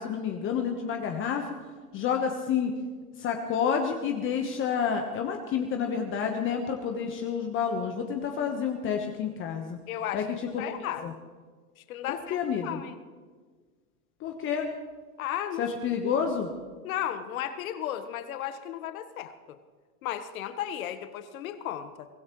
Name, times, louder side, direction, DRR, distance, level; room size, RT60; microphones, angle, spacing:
voice 1, 0.0-1.5 1.9-2.7 3.2-9.8 10.1-10.2 10.5-11.1 12.1-12.8 14.2-14.7 15.6-16.5, left 7 dB, 25° left, 3 dB, 1.2 m, -29 dB
voice 2, 9.9-10.3 10.6-11.1 11.8-13.0 15.2-16.0 16.8-19.6 20.0-22.1, left 11 dB, 65° left, 9 dB, 1.4 m, -35 dB
23.5 x 16.0 x 3.2 m, 1.5 s
hypercardioid pair, 125°, 45 cm